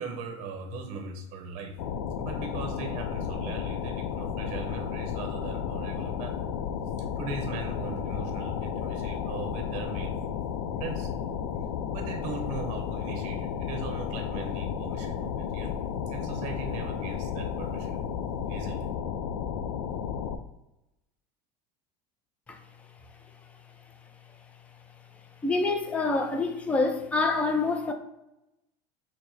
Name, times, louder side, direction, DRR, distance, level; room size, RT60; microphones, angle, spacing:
voice 1, 0.0-1.8 2.2-6.5 7.2-10.2 10.8-11.1 11.9-15.7 16.1-18.0 18.5-18.9, right 4 dB, 55° right, 0.6 m, -39 dB
sound 1, 1.8-20.4, left 8 dB, 90° left, 0.4 m, -33 dB
voice 2, 25.4-27.9, left 3 dB, 10° left, 0.4 m, -26 dB
4.7 x 2.1 x 4.0 m
supercardioid pair, 135°, 15 cm